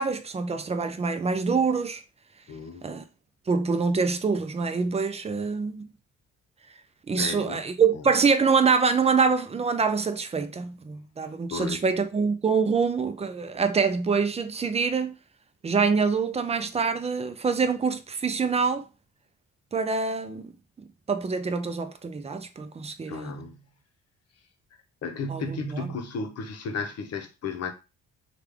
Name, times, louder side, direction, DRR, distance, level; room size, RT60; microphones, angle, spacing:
voice 1, 0.0-2.0 2.8-3.0 3.5-5.9 7.1-15.1 15.6-18.9 19.7-20.5 21.1-23.3 25.3-25.9, right 5 dB, 20° right, 0.4 m, -25 dB
voice 2, 2.5-2.9 7.1-7.6 7.9-8.0 11.5-11.8 23.1-23.6 25.0-27.7, left 3 dB, 55° left, 0.8 m, -34 dB
3.3 x 2.4 x 3.4 m
cardioid pair, 90°, 30 cm